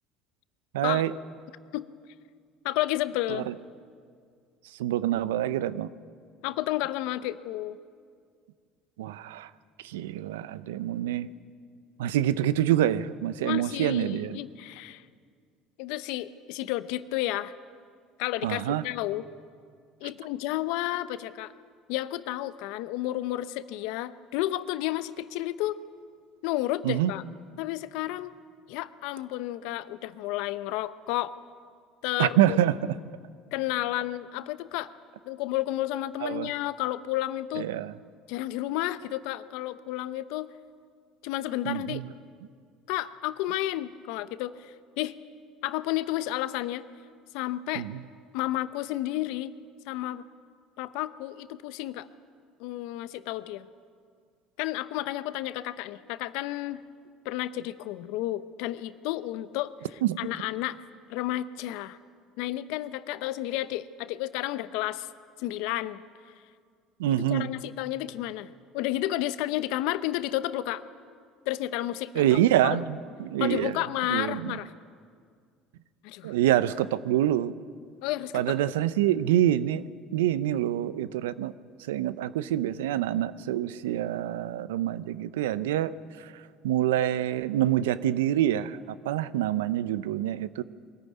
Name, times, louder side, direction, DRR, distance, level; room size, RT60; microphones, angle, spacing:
voice 1, 0.7-1.1 3.3-3.5 4.8-5.9 9.0-9.5 9.8-11.3 12.0-14.4 18.4-18.8 26.8-27.1 32.2-33.0 36.2-36.5 37.6-37.9 41.6-42.0 47.7-48.0 60.0-60.2 67.0-67.5 72.1-73.8 74.1-74.6 76.2-77.5 78.3-79.8 80.1-81.5 81.9-85.9 86.2-90.6, right 12 dB, 85° right, 16 dB, 0.6 m, -26 dB
voice 2, 2.6-3.5 6.4-7.8 13.4-15.0 15.8-17.5 18.2-19.2 20.0-21.5 21.9-25.8 26.4-27.2 27.6-28.3 28.7-31.3 32.0-32.6 33.5-34.9 35.3-37.7 38.3-40.5 41.2-42.0 42.9-45.1 45.6-46.8 47.3-47.9 48.3-49.5 49.9-50.2 50.8-52.1 52.6-53.7 54.6-56.8 57.2-59.7 60.2-60.8 61.1-62.0 62.4-65.1 65.4-66.0 67.1-70.8 71.5-72.8 73.4-74.7 76.0-76.3 78.0-78.4, left 15 dB, 75° left, 14 dB, 0.8 m, -31 dB
22.5 x 14.5 x 9.4 m, 2.1 s
hypercardioid pair, 80°, 0 cm